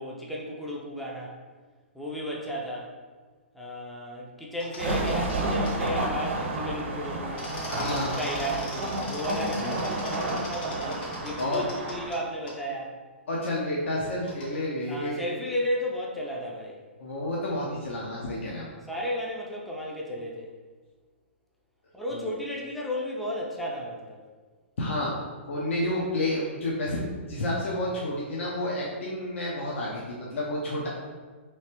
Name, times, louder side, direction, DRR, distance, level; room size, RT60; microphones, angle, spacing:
voice 1, 0.0-1.3 1.9-2.9 3.5-7.4 7.8-10.9 11.2-12.9 14.9-16.8 18.1-18.4 18.8-20.5 21.9-24.2, equal, ahead, -3 dB, 0.4 m, -34 dB
sound 1, 4.6-5.4 5.6-5.7 7.4-12.2 12.5-12.6 14.3-14.6, left 1 dB, 55° left, 1.1 m, -39 dB
sound 2, 4.8-12.1, right 2 dB, 65° right, 0.8 m, -31 dB
voice 2, 7.7-8.1 9.6-9.8 11.4-11.7 13.3-15.2 17.0-18.7 22.1-22.3 24.8-25.2 25.5-30.9, left 1 dB, 70° left, -4 dB, 0.7 m, -30 dB
3.2 x 3.2 x 2.9 m, 1.4 s
hypercardioid pair, 140°, 7 cm